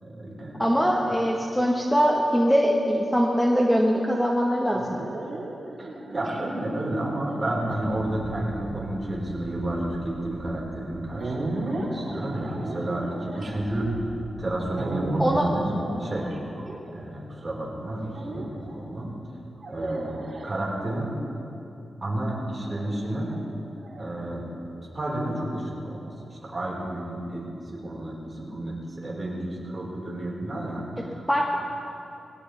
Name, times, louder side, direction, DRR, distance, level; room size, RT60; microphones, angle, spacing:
voice 1, 0.0-0.9 5.8-14.1 14.4-15.7 16.0-16.3 16.9-19.1 19.6-20.1 20.4-21.2 22.0-23.3 24.0-24.5 24.9-26.1 26.4-31.3, right 1 dB, 30° right, -4 dB, 4.6 m, -31 dB
voice 2, 0.6-5.0 15.2-15.5 31.3-31.5, equal, 5° left, -1 dB, 1.2 m, -22 dB
sound 1, 4.7-17.3 18.1-18.8 19.6-21.1 22.6-24.0, right 1 dB, 55° right, 3.2 m, -35 dB
21.5 x 17.0 x 3.4 m, 2.7 s
wide cardioid pair, 105°, 0 cm